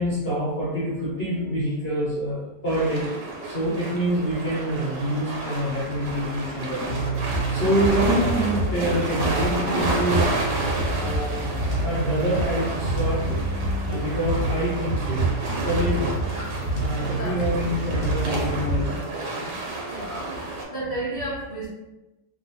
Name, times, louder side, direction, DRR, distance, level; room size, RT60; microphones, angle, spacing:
voice 1, 0.0-3.1 3.4-10.4 10.8-13.3 13.9-15.2 15.6-16.2 16.8-19.0, equal, 50° left, -10 dB, 0.8 m, -26 dB
sound 1, 2.7-20.6, right 2 dB, 85° right, 1.4 m, -31 dB
sound 2, 6.9-18.9, right 2 dB, 75° left, 1.2 m, -27 dB
voice 2, 19.8-21.7, right 1 dB, 35° right, -11 dB, 0.8 m, -32 dB
2.9 x 2.2 x 2.8 m, 1.0 s
omnidirectional pair, 1.8 m